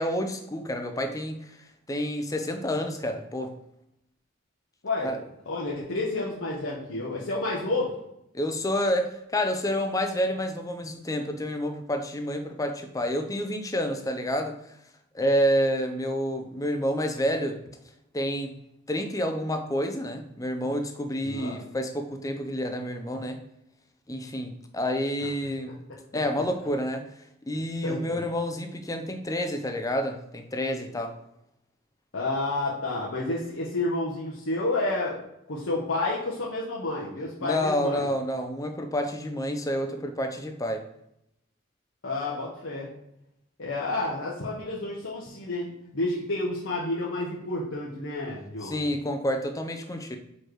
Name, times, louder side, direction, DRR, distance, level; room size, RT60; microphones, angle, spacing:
voice 1, 0.0-1.6 1.9-3.5 5.0-5.2 8.3-14.6 15.1-17.6 18.1-18.5 18.9-23.4 24.1-25.8 26.1-27.0 27.5-31.1 37.4-40.8 48.6-50.2, equal, 15° left, 6 dB, 0.6 m, -29 dB
voice 2, 4.8-5.2 5.5-7.9 21.2-21.6 27.8-28.2 32.1-35.2 35.5-38.1 42.0-42.9 43.6-48.7, left 2 dB, 85° left, -5 dB, 1.1 m, -30 dB
4.7 x 4.5 x 4.7 m, 0.81 s
head